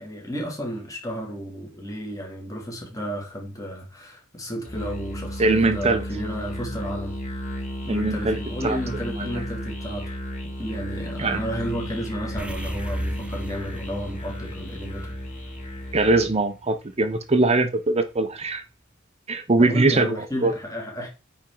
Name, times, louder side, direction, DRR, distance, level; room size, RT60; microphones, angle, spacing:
voice 1, 0.0-7.2 7.8-10.2 10.6-15.1 19.6-21.1, equal, 15° left, 2.2 m, -32 dB
Musical instrument, 4.6-16.4, equal, 40° left, 2.4 m, -34 dB
voice 2, 5.4-6.0 7.9-8.8 9.1-9.4 11.2-11.4 15.9-18.6 19.3-20.5, right 2 dB, 30° right, 0.7 m, -22 dB
sound 1, 12.4-16.9, right 1 dB, 5° right, 0.3 m, -34 dB
9.2 x 4.3 x 3.8 m
head